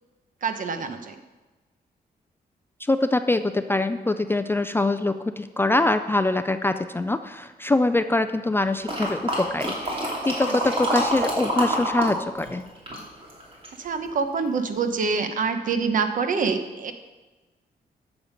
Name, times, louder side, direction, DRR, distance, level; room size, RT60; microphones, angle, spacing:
voice 1, 0.4-1.1 13.8-16.9, right 5 dB, 55° right, 8 dB, 1.0 m, -26 dB
voice 2, 2.9-12.6, left 2 dB, 15° left, 8 dB, 0.3 m, -24 dB
sound 1, 8.9-12.1 12.4-13.8 14.4-14.5, right 1 dB, 35° right, 2.7 m, -26 dB
12.5 x 7.2 x 5.2 m, 1.2 s
wide cardioid pair, 150°, 16 cm